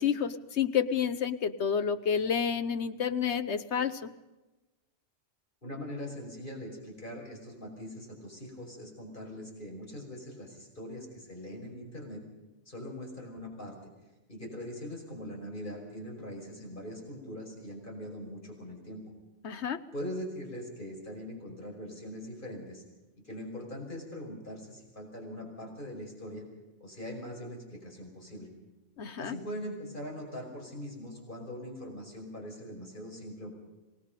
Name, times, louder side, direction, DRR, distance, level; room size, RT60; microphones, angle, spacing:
voice 1, 0.0-4.1 19.4-19.8 29.0-29.4, left 7 dB, 65° left, 11 dB, 1.3 m, -29 dB
voice 2, 5.6-12.2 12.7-13.8 14.3-19.1 19.9-22.8 23.2-26.5 26.8-28.5 29.2-33.6, equal, 40° left, 0 dB, 5.7 m, -42 dB
26.5 x 19.0 x 5.2 m, 1.1 s
omnidirectional pair, 1.3 m